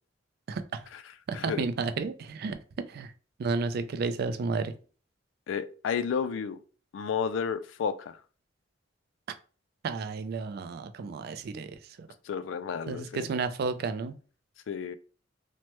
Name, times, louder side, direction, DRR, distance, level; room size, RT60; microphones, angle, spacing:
voice 1, 1.3-2.6 2.9-3.1 3.4-4.7 9.8-11.7 12.0-12.1 12.9-14.1, right 4 dB, 60° right, 0.3 m, -32 dB
voice 2, 5.5-6.6 6.9-8.2 12.3-13.3 14.7-14.9, left 6 dB, 85° left, 0.3 m, -31 dB
3.1 x 2.1 x 2.9 m
head